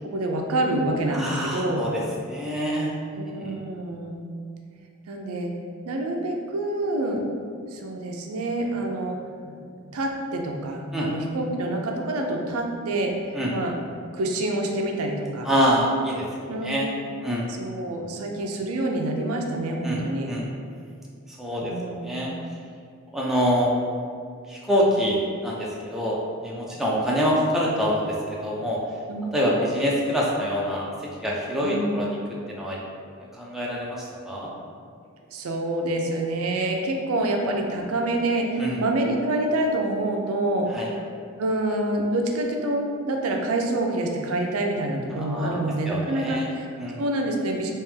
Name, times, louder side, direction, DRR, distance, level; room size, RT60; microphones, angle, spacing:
voice 1, 0.0-1.8 3.2-4.2 5.1-5.5 5.9-7.2 7.7-9.2 9.4-13.1 13.5-13.8 14.1-15.5 16.5-16.8 17.6-20.3 21.6-22.3 29.1-29.3 31.6-32.0 35.3-40.7 41.4-46.7 47.0-47.7, right 1 dB, 85° right, 2 dB, 0.5 m, -27 dB
voice 2, 1.1-2.9 3.4-3.6 10.9-11.1 13.3-13.5 15.4-16.9 17.2-17.5 19.8-20.5 21.3-22.3 23.1-23.7 24.5-26.2 26.4-28.2 28.4-28.8 29.3-30.9 31.2-32.2 32.5-32.8 33.3-34.5 38.6-38.8 40.7-40.9 45.2-45.6 45.9-46.5 46.8-47.0, equal, ahead, -5 dB, 0.5 m, -26 dB
3.3 x 3.0 x 3.2 m, 2.2 s
head